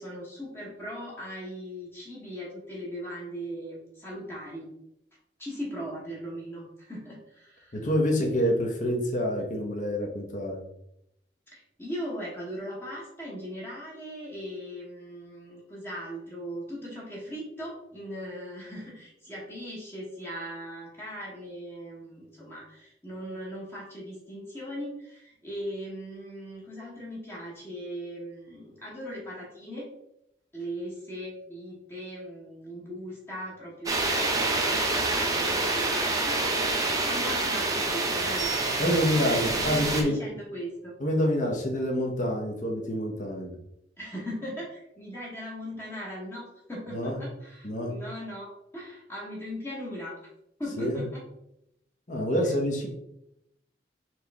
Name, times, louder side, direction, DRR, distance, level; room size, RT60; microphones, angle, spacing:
voice 1, 0.0-4.7 5.4-7.8 11.5-29.9 30.5-38.5 38.9-41.0 44.0-50.2 50.6-51.2 52.2-52.5, equal, 15° left, -5 dB, 1.0 m, -39 dB
voice 2, 7.7-10.6 38.8-40.2 41.0-43.5 46.9-47.2 47.6-47.9 50.8-51.0 52.1-52.9, equal, 45° left, 0 dB, 0.9 m, -27 dB
sound 1, 33.9-40.0, right 2 dB, 20° right, 0.6 m, -27 dB
4.4 x 3.0 x 3.4 m, 0.81 s
head